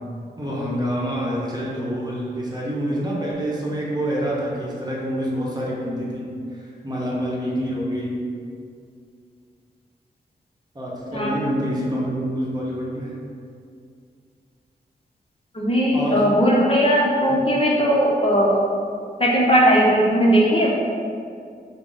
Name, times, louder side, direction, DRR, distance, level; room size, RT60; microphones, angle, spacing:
voice 1, 0.4-8.2 10.7-13.2 15.9-16.3 17.3-17.4, equal, 25° right, -5 dB, 0.9 m, -27 dB
voice 2, 15.5-18.6 19.2-20.7, equal, 30° left, -4 dB, 0.6 m, -18 dB
3.8 x 2.0 x 3.7 m, 2.3 s
cardioid pair, 50°, 18 cm